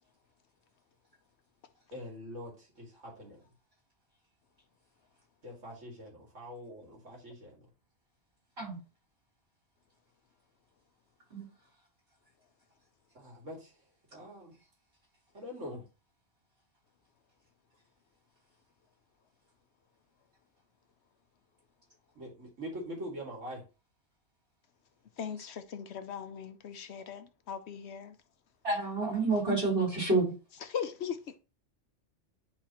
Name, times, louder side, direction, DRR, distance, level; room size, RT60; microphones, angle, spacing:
voice 1, 1.9-3.4 5.4-7.6 13.1-13.7 14.1-14.5 15.3-15.9 22.1-23.6, equal, 85° right, 2.7 m, -44 dB
voice 2, 25.2-28.2 29.5-29.6 30.6-31.4, left 7 dB, 65° left, 0.9 m, -39 dB
voice 3, 28.6-30.3, right 3 dB, 55° right, 3.9 m, -28 dB
10.5 x 3.6 x 2.9 m
omnidirectional pair, 1.3 m